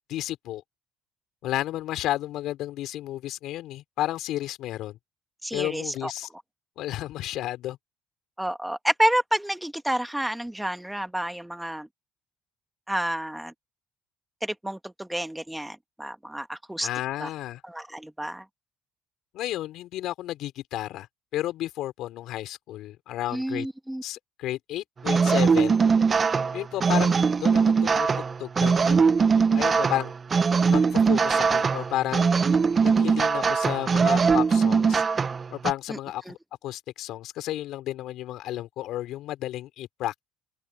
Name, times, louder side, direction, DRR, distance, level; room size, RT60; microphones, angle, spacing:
voice 1, 0.1-0.6 1.4-5.0 5.5-6.3 6.8-7.8 16.8-17.6 19.3-21.1 21.3-23.7 24.0-25.8 26.5-28.1 28.4-28.9 29.6-30.1 30.7-32.4 32.8-35.0 35.5-36.2 36.6-40.3, left 14 dB, 70° left, 4.6 m, -32 dB
voice 2, 5.4-6.1 8.4-11.9 12.9-13.5 14.4-16.9 17.2-17.3 17.6-18.5 23.3-24.0 35.9-36.0 36.3-36.4, right 1 dB, 5° right, 1.7 m, -29 dB
sound 1, 25.0-35.7, right 5 dB, 30° right, 1.1 m, -21 dB
open air
cardioid pair, 105°, 0 cm